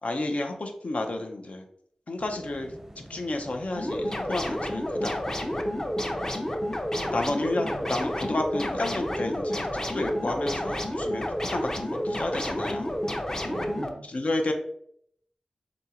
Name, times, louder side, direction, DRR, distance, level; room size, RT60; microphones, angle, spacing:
voice 1, 0.0-1.6 2.1-2.7 3.1-5.3 7.1-12.9 14.1-14.5, left 2 dB, 65° left, 4 dB, 0.7 m, -31 dB
sound 1, 2.2-13.8, right 1 dB, 20° right, 0.6 m, -47 dB
sound 2, 3.8-13.9, left 1 dB, 25° left, 0.7 m, -30 dB
voice 2, 6.9-7.9 13.4-14.1, right 3 dB, 70° right, 5 dB, 0.3 m, -44 dB
3.9 x 3.5 x 2.9 m, 0.68 s
cardioid pair, 50°, 2 cm